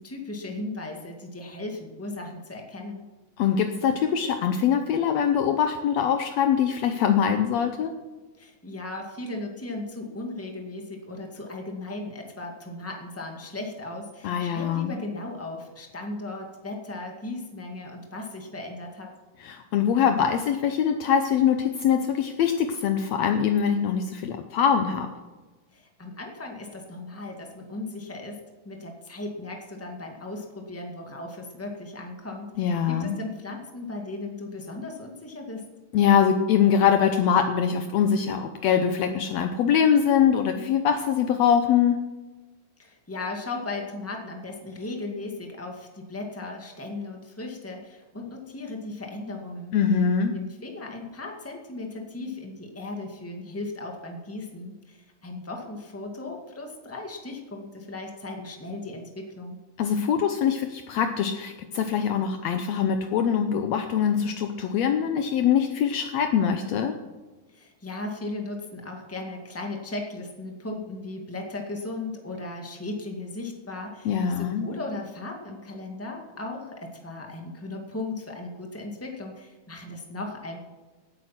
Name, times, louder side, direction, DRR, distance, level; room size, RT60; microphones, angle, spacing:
voice 1, 0.0-3.0 8.4-19.1 25.7-28.4 28.6-35.7 42.8-49.8 50.3-59.6 67.5-80.6, left 2 dB, 10° left, 2 dB, 0.6 m, -37 dB
voice 2, 3.4-7.9 14.2-14.9 19.4-25.1 32.6-33.2 35.9-42.0 49.7-50.3 59.8-66.9 74.0-74.7, left 8 dB, 80° left, 6 dB, 1.5 m, -23 dB
17.5 x 9.0 x 5.9 m, 1.2 s
omnidirectional pair, 4.1 m